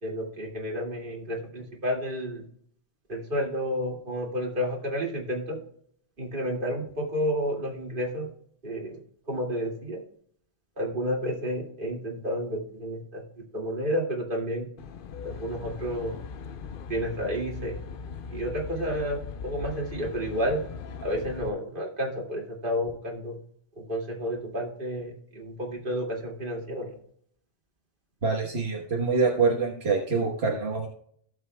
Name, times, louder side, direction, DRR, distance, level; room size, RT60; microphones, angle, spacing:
voice 1, 0.0-2.4 3.1-5.6 6.2-8.3 8.6-9.0 9.3-10.0 10.8-13.2 13.5-14.7 15.2-16.2 16.9-17.8 18.3-20.6 21.0-23.4 23.8-26.9, equal, 55° right, -1 dB, 2.5 m, -31 dB
Aircraft, 14.8-21.5, left 5 dB, 60° left, 0.8 m, -39 dB
voice 2, 28.2-30.9, right 4 dB, 85° right, -1 dB, 1.5 m, -25 dB
16.5 x 7.3 x 2.2 m, 0.63 s
omnidirectional pair, 1.0 m